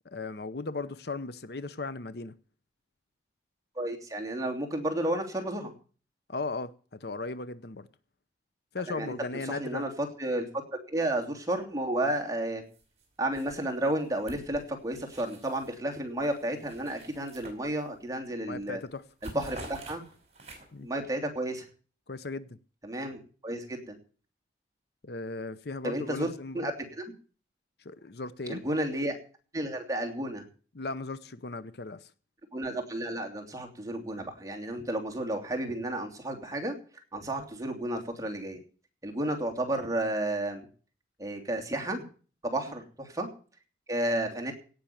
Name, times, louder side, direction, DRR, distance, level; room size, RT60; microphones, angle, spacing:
voice 1, 0.0-2.3 6.3-7.9 8.7-9.9 18.5-19.0 20.7-20.9 22.1-22.6 25.0-26.7 27.8-28.6 30.7-32.1, left 3 dB, 60° left, 0.8 m, -37 dB
voice 2, 3.7-5.7 8.9-9.1 9.4-10.4 10.9-12.6 13.2-18.8 19.3-20.0 20.8-21.7 22.8-24.0 25.8-27.0 28.5-29.1 29.5-30.4 32.5-36.7 37.1-38.6 39.0-40.6 41.2-42.0 42.5-43.3 43.9-44.5, right 1 dB, 15° right, 2.8 m, -32 dB
sound 1, 12.7-13.0 13.3-15.8 16.2-18.1 18.5-18.7 19.0-20.9, right 2 dB, 35° right, 4.8 m, -48 dB
17.5 x 6.3 x 9.2 m
head